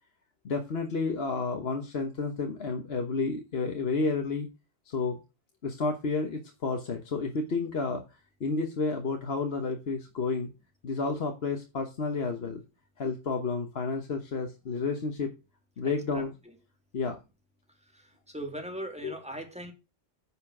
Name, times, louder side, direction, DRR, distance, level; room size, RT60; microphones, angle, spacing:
voice 1, 0.4-4.5 4.8-5.2 5.6-8.0 8.4-10.5 10.8-12.6 13.0-15.3 15.8-16.3 16.9-17.2 19.0-19.1, left 4 dB, 55° left, 1.3 m, -31 dB
voice 2, 18.3-19.7, right 1 dB, 5° right, 2.2 m, -38 dB
9.8 x 5.1 x 6.0 m
omnidirectional pair, 1.3 m